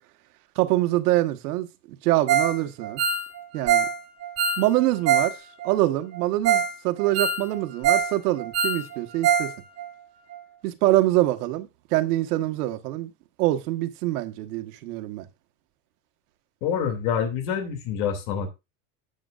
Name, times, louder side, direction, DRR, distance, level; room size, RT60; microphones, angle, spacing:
voice 1, 0.5-3.0 3.5-3.9 4.6-9.5 10.6-13.1 13.4-15.3, right 16 dB, 75° right, 1.6 m, -25 dB
Ringtone, 2.3-2.6 2.8-5.3 5.6-5.7 6.1-6.2 6.4-6.7 7.0-8.1 8.4-9.5 9.8-9.9 10.3-10.4, right 7 dB, 35° right, 5.1 m, -23 dB
voice 2, 16.6-18.5, left 7 dB, 70° left, 3.0 m, -26 dB
12.5 x 8.8 x 2.6 m
supercardioid pair, 155°, 47 cm